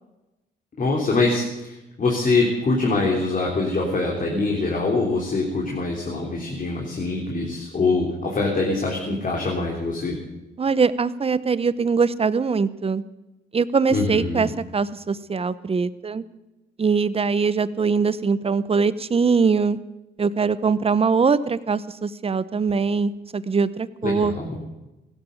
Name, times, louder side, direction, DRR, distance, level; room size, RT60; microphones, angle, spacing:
voice 1, 0.8-10.2 13.9-14.5 24.0-24.5, left 3 dB, 40° left, -1 dB, 3.5 m, -24 dB
voice 2, 10.6-13.0 13.5-16.2 16.8-19.8 20.2-24.3, right 5 dB, 30° right, 16 dB, 0.8 m, -22 dB
16.0 x 12.0 x 7.0 m, 1.0 s
cardioid pair, 90°, 20 cm